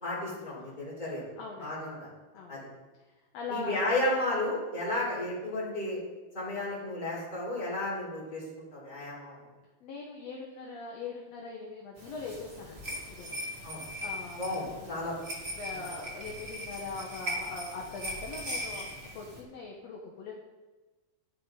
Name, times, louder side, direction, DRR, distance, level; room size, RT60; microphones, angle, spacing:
voice 1, 0.0-1.2 1.6-2.1 2.5-2.6 3.5-6.0 6.3-9.4 13.6-14.1 14.4-15.2 15.7-15.8, left 1 dB, 10° left, -7 dB, 4.2 m, -33 dB
voice 2, 1.4-1.8 2.3-2.7 3.3-3.8 9.8-13.4 14.0-14.5 14.8-15.0 15.5-20.3, left 4 dB, 60° left, -1 dB, 2.0 m, -41 dB
sound 1, 12.0-19.4, equal, 25° right, 1.6 m, -39 dB
11.5 x 11.5 x 3.8 m, 1.2 s
omnidirectional pair, 4.0 m